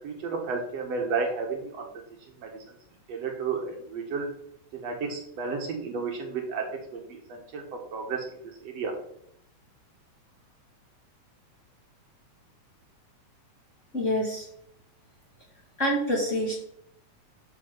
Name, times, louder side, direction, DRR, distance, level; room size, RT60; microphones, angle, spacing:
voice 1, 0.0-1.9 2.4-2.6 3.1-4.3 4.7-6.7 6.9-7.6 7.9-8.9, right 4 dB, 65° right, 2 dB, 2.4 m, -32 dB
voice 2, 13.9-14.4 15.8-16.6, equal, 30° left, -4 dB, 1.9 m, -26 dB
12.0 x 4.3 x 5.9 m, 0.72 s
omnidirectional pair, 3.4 m